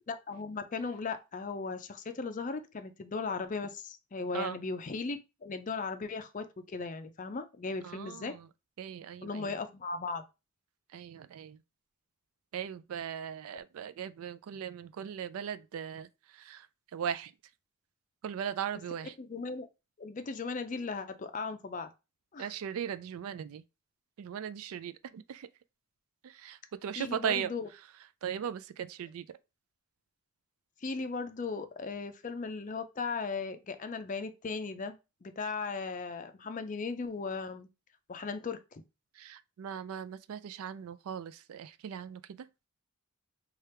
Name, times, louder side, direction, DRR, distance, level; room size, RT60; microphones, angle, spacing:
voice 1, 0.1-8.3 9.2-10.2 19.2-19.7 20.0-21.9 22.3-22.5 27.0-27.7 30.8-37.7 38.1-38.8, left 4 dB, 35° left, 0.4 m, -37 dB
voice 2, 7.8-8.5 8.8-9.6 10.9-11.6 12.5-16.7 16.9-17.3 18.2-19.1 22.4-23.6 24.2-25.5 26.2-27.5 28.2-29.3 39.2-42.5, right 8 dB, 70° right, 0.3 m, -38 dB
3.3 x 2.3 x 4.3 m
head